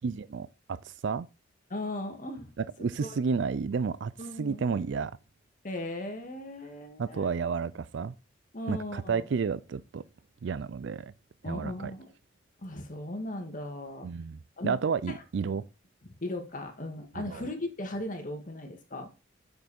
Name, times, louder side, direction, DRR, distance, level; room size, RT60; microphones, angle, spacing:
voice 1, 0.0-1.3 2.8-4.1 4.4-5.1 7.0-8.1 8.7-10.0 10.4-11.1 11.5-11.9 14.0-15.6 17.2-17.5, right 5 dB, 65° right, 0.4 m, -31 dB
voice 2, 1.7-2.5 3.0-3.2 4.2-4.6 5.6-7.3 8.5-9.2 11.4-12.1 12.6-14.1 14.6-14.8 15.1-15.6 16.2-19.1, left 1 dB, 45° left, 1.9 m, -37 dB
8.2 x 6.7 x 4.3 m
head